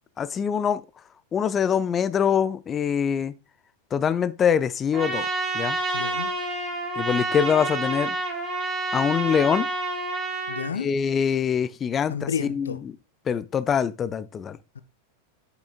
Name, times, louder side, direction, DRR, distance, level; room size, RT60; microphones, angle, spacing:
voice 1, 0.2-0.8 1.3-3.3 3.9-5.3 5.5-5.8 7.0-8.2 8.9-9.7 10.7-12.8 13.3-14.6, left 7 dB, 25° left, 0.4 m, -24 dB
Trumpet, 4.9-10.7, right 2 dB, 25° right, 2.3 m, -28 dB
voice 2, 5.9-6.3 10.5-10.9 12.1-12.8 14.7-14.8, left 7 dB, 70° left, 0.6 m, -31 dB
8.5 x 6.0 x 2.4 m
figure-of-eight pair, 90°, 0 cm